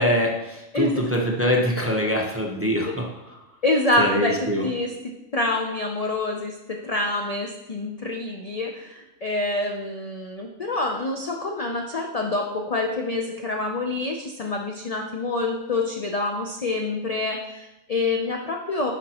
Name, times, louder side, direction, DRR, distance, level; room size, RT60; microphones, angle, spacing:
voice 1, 0.0-3.1 4.0-4.6, equal, 15° right, -1 dB, 0.7 m, -23 dB
voice 2, 3.6-4.4 4.6-4.9 5.3-18.9, left 2 dB, 50° left, 1 dB, 0.4 m, -26 dB
10.5 x 5.1 x 2.9 m, 0.98 s
omnidirectional pair, 1.4 m